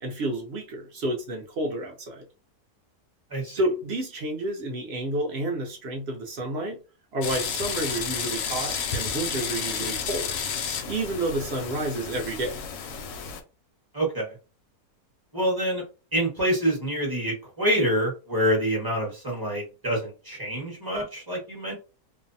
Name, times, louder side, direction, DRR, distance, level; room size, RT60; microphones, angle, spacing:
voice 1, 0.0-2.2 3.5-6.8 7.1-10.3 10.9-12.6, right 1 dB, 55° right, 0.7 m, -30 dB
sound 1, 7.2-13.4, left 6 dB, 70° left, 0.8 m, -31 dB
voice 2, 13.9-14.3 15.3-15.8 16.1-21.8, equal, 15° right, 0.8 m, -26 dB
2.6 x 2.1 x 2.6 m
omnidirectional pair, 1.7 m